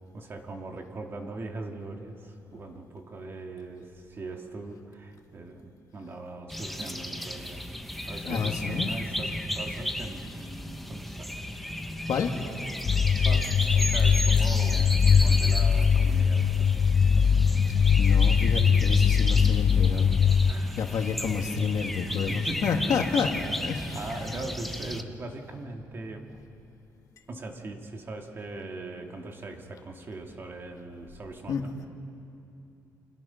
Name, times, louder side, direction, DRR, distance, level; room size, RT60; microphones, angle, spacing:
voice 1, 0.1-7.7 8.1-11.4 13.2-16.8 20.5-20.8 22.3-22.7 22.9-23.1 23.9-26.4 27.3-31.8, right 2 dB, 35° right, 3 dB, 2.3 m, -40 dB
sound 1, 6.5-25.0, left 1 dB, ahead, 1.0 m, -34 dB
voice 2, 8.2-8.9 12.1-12.3 18.0-20.1 20.8-24.0 31.5-31.6, left 6 dB, 60° left, 3 dB, 2.0 m, -29 dB
sound 2, 12.8-20.5, left 6 dB, 40° left, 0.7 m, -21 dB
29.0 x 25.0 x 5.8 m, 2.8 s
cardioid pair, 130°, 7 cm